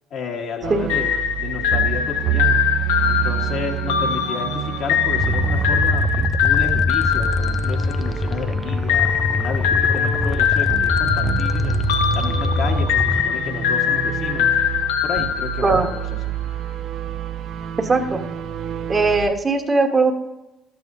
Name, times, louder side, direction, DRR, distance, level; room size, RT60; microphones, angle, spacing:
voice 1, 0.1-2.6 3.1-11.8 12.1-14.5 15.0-16.0, left 4 dB, 60° left, 1 dB, 1.5 m, -31 dB
sound 1, 0.6-19.3, right 11 dB, 60° right, 0.6 m, -28 dB
sound 2, 0.9-8.3 8.9-16.1, left 9 dB, 80° left, 0.8 m, -22 dB
sound 3, 5.2-13.2, left 3 dB, 25° left, 0.5 m, -24 dB
voice 2, 17.8-18.2 18.9-20.1, right 3 dB, 30° right, 4 dB, 1.3 m, -19 dB
13.0 x 8.1 x 2.7 m, 1.0 s
hypercardioid pair, 60°, 0 cm